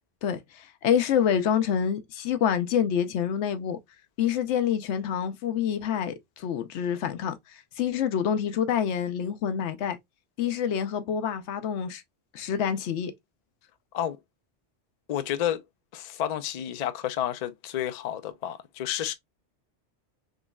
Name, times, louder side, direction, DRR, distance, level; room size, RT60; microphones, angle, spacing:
voice 1, 0.2-3.8 4.2-10.0 10.4-12.0 12.3-13.1, left 8 dB, 85° left, 0.9 m, -27 dB
voice 2, 15.1-15.6 15.9-19.1, left 11 dB, 55° left, 0.4 m, -30 dB
3.7 x 3.0 x 2.2 m
omnidirectional pair, 1.1 m